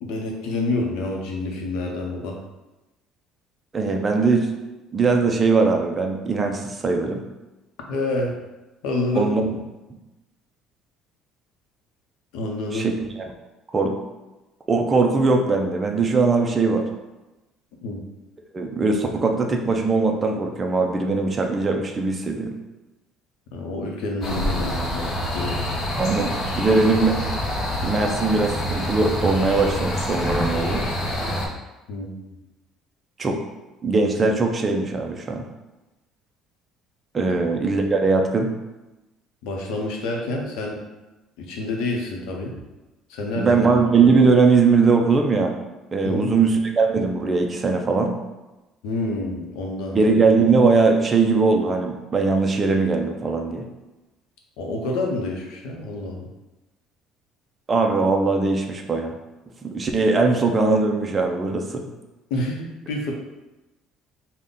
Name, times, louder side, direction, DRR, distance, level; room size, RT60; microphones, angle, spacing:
voice 1, 0.0-2.4 7.9-8.3 8.8-9.3 12.3-12.9 17.8-18.0 23.5-25.6 31.9-32.2 37.3-37.4 39.4-40.8 41.4-42.5 43.1-43.8 46.0-46.3 48.8-50.0 54.6-56.3 62.3-63.1, left 2 dB, 85° left, 0 dB, 0.7 m, -28 dB
voice 2, 3.7-4.5 4.9-7.2 9.2-9.6 12.7-13.1 13.7-14.0 14.7-16.8 18.5-22.5 26.0-27.2 27.8-30.9 33.2-33.4 33.8-35.4 37.1-38.5 43.4-45.5 45.9-48.1 49.9-53.7 57.7-59.1 59.6-61.9, right 4 dB, 20° right, 3 dB, 0.4 m, -20 dB
sound 1, 24.2-31.5, equal, 35° left, 0.6 m, -26 dB
3.9 x 2.1 x 3.6 m, 1.0 s
cardioid pair, 170°, 0 cm